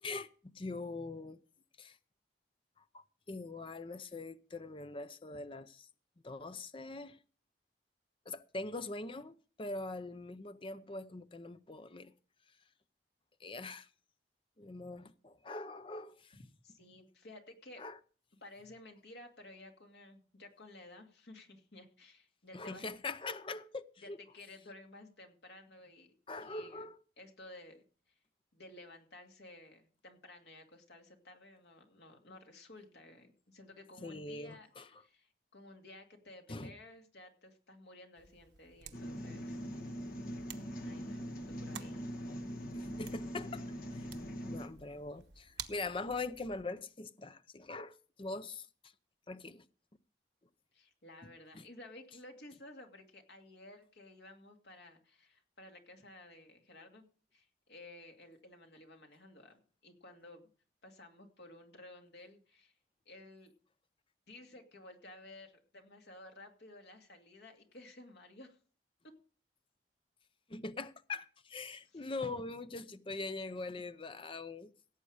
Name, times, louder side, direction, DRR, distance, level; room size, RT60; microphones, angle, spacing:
voice 1, 0.0-1.4 1.8-2.0 2.9-5.9 6.2-7.2 8.3-12.1 13.4-13.9 14.6-16.4 17.8-18.0 22.5-24.2 26.3-27.0 34.0-34.9 36.5-36.7 42.7-43.6 43.9-44.0 44.4-48.7 49.3-49.6 51.5-51.6 70.5-74.7, left 3 dB, 30° left, 0.6 m, -42 dB
voice 2, 16.6-17.8 18.4-22.9 24.0-26.1 26.4-26.9 27.2-27.8 28.5-39.6 40.8-42.3 50.7-57.0 57.3-60.5 60.8-62.7 63.1-63.5 64.3-68.6 69.0-69.1 71.9-72.1, left 2 dB, 70° left, 2.4 m, -54 dB
sound 1, 38.2-46.6, right 8 dB, 80° right, 1.1 m, -53 dB
sound 2, 38.9-44.7, equal, 55° left, 1.7 m, -42 dB
17.0 x 8.2 x 5.0 m
head